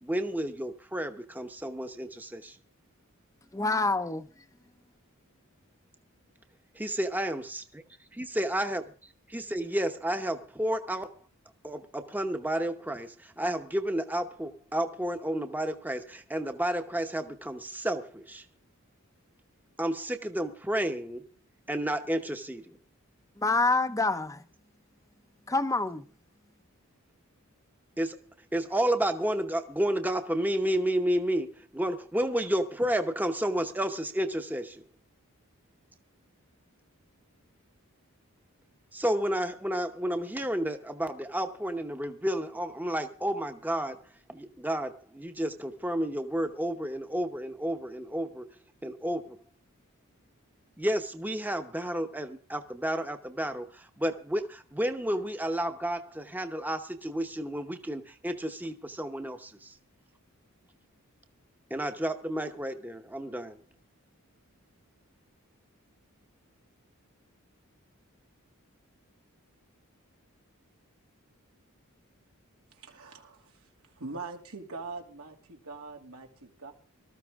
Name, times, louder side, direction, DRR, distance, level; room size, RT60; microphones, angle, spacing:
voice 1, 0.0-2.6 6.7-7.6 8.2-8.8 9.3-11.2 11.6-18.4 19.8-21.2 21.7-22.8 28.0-28.2 28.5-34.8 38.9-44.0 44.3-48.5 48.8-49.4 50.8-59.7 61.7-63.6, right 1 dB, 10° right, 0.9 m, -31 dB
voice 2, 3.5-4.3 23.4-24.4 25.5-26.0, left 3 dB, 15° left, 0.6 m, -26 dB
voice 3, 72.8-73.5 74.0-76.7, right 3 dB, 90° right, 2.7 m, -42 dB
19.5 x 13.5 x 3.6 m
head